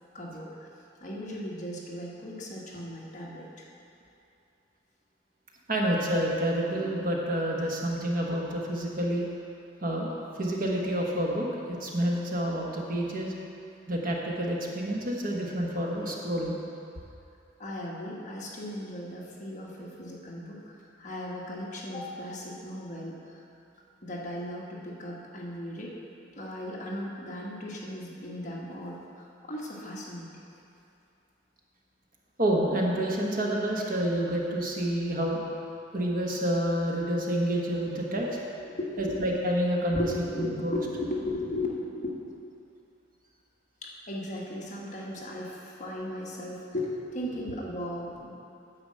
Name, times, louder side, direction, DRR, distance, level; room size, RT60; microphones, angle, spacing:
voice 1, 0.1-0.7 1.0-3.7 17.6-23.5 24.0-26.0 26.4-30.4 38.1-38.4 38.6-39.3 39.9-42.4 43.8-48.3, left 1 dB, 40° left, -4 dB, 1.4 m, -37 dB
voice 2, 5.7-9.2 9.8-13.3 13.9-16.6 32.4-35.4 35.9-38.3 39.0-40.8, right 1 dB, 45° right, -2 dB, 1.2 m, -28 dB
9.8 x 4.9 x 7.6 m, 2.6 s
head